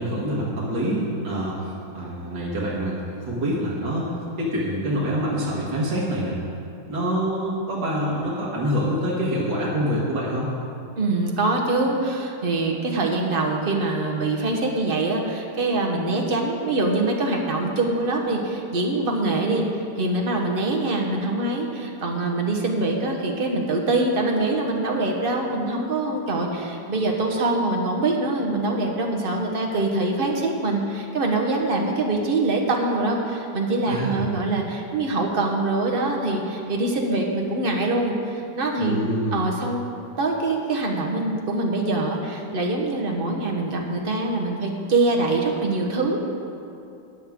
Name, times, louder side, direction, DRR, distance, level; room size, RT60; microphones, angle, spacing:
voice 1, 0.0-4.1 4.4-6.4 6.9-10.5 33.9-34.2 38.8-39.4, equal, 80° right, -6 dB, 2.2 m, -26 dB
voice 2, 11.0-19.6 20.0-39.0 39.3-39.8 40.2-46.2, right 2 dB, 35° right, 1 dB, 1.2 m, -24 dB
14.0 x 9.0 x 3.6 m, 2.7 s
omnidirectional pair, 1.9 m